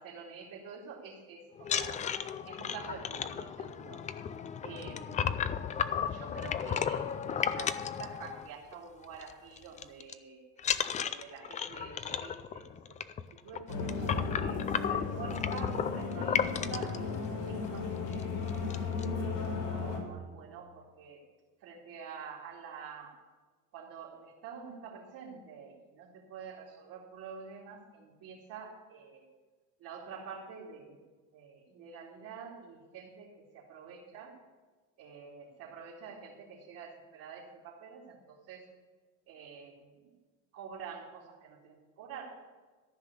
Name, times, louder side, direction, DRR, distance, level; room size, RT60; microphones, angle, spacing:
voice 1, 0.0-2.1 2.5-4.0 4.6-5.2 5.9-10.4 11.0-12.7 13.3-18.4 19.2-21.2 21.6-23.2 23.7-29.2 29.8-31.0 31.3-34.3 35.0-38.7 39.3-40.1 40.5-42.3, right 6 dB, 60° right, -6 dB, 2.5 m, -47 dB
sound 1, 1.6-8.7 9.0-9.3 9.6-10.1 10.6-17.0 17.6-17.7 18.1-18.2 18.5-19.0, left 8 dB, 20° left, 0.3 m, -34 dB
sound 2, 13.7-20.0, left 4 dB, 90° left, 3.4 m, -35 dB
14.0 x 5.8 x 8.3 m, 1.4 s
cardioid pair, 145°, 37 cm